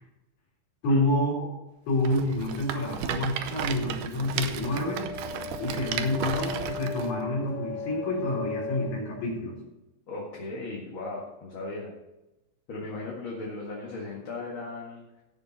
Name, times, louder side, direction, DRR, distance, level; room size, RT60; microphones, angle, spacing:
voice 1, 0.8-1.5 1.9-5.0 5.6-9.5, left 1 dB, 60° left, -5 dB, 5.3 m, -28 dB
Rattle, 2.0-7.1, right 9 dB, 90° right, 2.4 m, -34 dB
sound 1, 4.0-8.9, left 4 dB, 25° left, 2.9 m, -38 dB
voice 2, 10.1-11.9 12.7-15.2, left 2 dB, 45° left, -3 dB, 2.4 m, -37 dB
16.5 x 7.1 x 4.2 m, 0.99 s
omnidirectional pair, 3.6 m